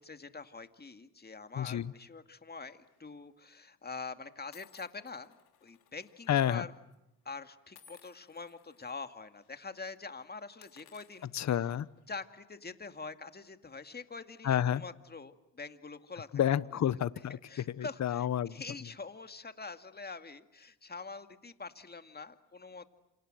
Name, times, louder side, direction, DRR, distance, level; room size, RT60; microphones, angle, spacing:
voice 1, 0.0-6.7 7.3-11.5 12.1-16.4 17.3-22.9, left 4 dB, 25° left, 8 dB, 2.2 m, -45 dB
voice 2, 1.5-1.9 6.3-6.6 11.3-11.9 14.4-14.8 16.3-17.4 17.7-18.6, left 10 dB, 45° left, 18 dB, 0.9 m, -29 dB
sound 1, 2.8-3.1 3.9-4.0 4.5-6.5 6.7-6.9 7.7-8.9 9.3-9.5 9.8-10.0 10.5-12.0, left 8 dB, 70° left, 3.5 m, -61 dB
28.0 x 27.5 x 7.7 m, 0.89 s
supercardioid pair, 70°, 40 cm